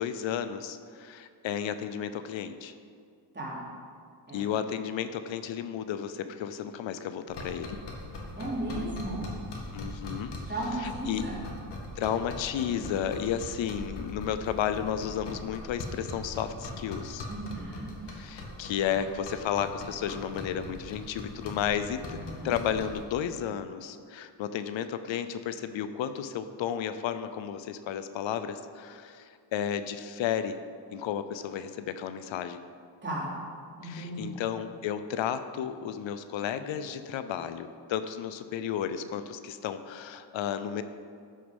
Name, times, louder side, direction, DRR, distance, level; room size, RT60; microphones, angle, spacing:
voice 1, 0.0-2.7 4.3-7.8 9.7-10.3 10.8-11.3 12.0-17.3 18.1-30.6 30.9-32.6 33.8-40.8, left 9 dB, 80° left, 11 dB, 0.7 m, -33 dB
sound 1, 7.3-23.0, left 2 dB, 65° left, 2.1 m, -41 dB
voice 2, 8.4-9.3 10.5-11.4 17.3-17.9 22.1-22.6 33.0-33.3 33.8-34.3, right 1 dB, 25° right, -6 dB, 3.3 m, -35 dB
13.5 x 6.6 x 5.3 m, 2.2 s
cardioid pair, 135°, 45 cm